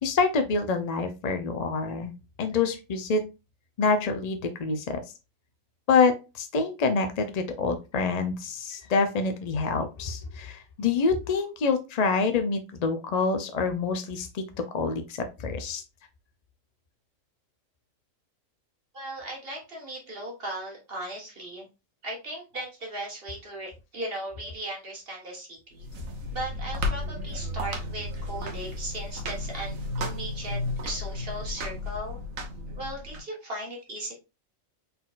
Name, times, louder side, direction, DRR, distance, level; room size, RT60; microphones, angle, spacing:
voice 1, 0.0-2.1 2.4-3.2 3.8-5.0 5.9-14.4 14.7-15.8, left 4 dB, 60° left, 7 dB, 0.4 m, -26 dB
voice 2, 18.9-21.7 22.0-25.8 26.3-32.2 32.8-34.2, right 1 dB, 45° right, 0 dB, 1.6 m, -37 dB
sound 1, 25.7-33.2, left 1 dB, 85° right, 1.4 m, -33 dB
4.1 x 4.1 x 2.4 m, 0.28 s
omnidirectional pair, 1.4 m